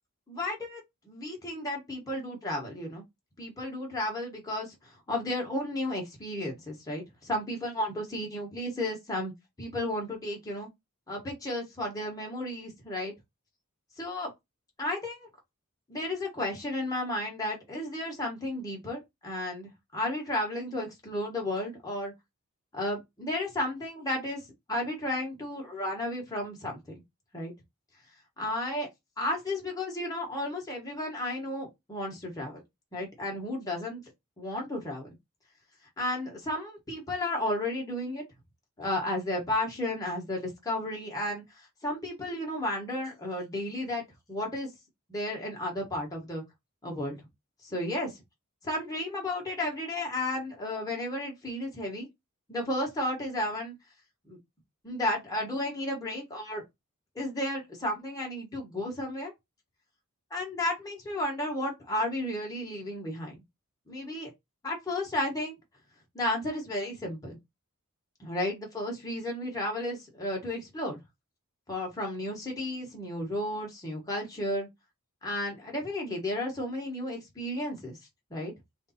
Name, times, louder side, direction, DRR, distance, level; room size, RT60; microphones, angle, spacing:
voice 1, 0.3-0.8 1.0-3.0 3.4-9.3 9.6-10.7 11.1-13.1 14.0-14.3 14.8-15.3 15.9-22.1 22.7-24.4 24.7-26.9 27.3-27.5 28.4-28.9 29.2-32.6 32.9-34.0 34.4-35.1 36.0-38.2 38.8-44.0 44.3-44.7 45.1-46.4 46.8-47.2 47.6-48.1 48.6-52.1 52.5-53.7 54.3-54.4 54.8-56.6 57.1-59.3 60.3-63.4 63.9-64.3 64.6-65.6 66.1-67.4 68.2-71.0 71.7-74.7 75.2-78.0 78.3-78.5, left 1 dB, 15° left, 1.2 m, -33 dB
3.3 x 2.6 x 4.1 m
head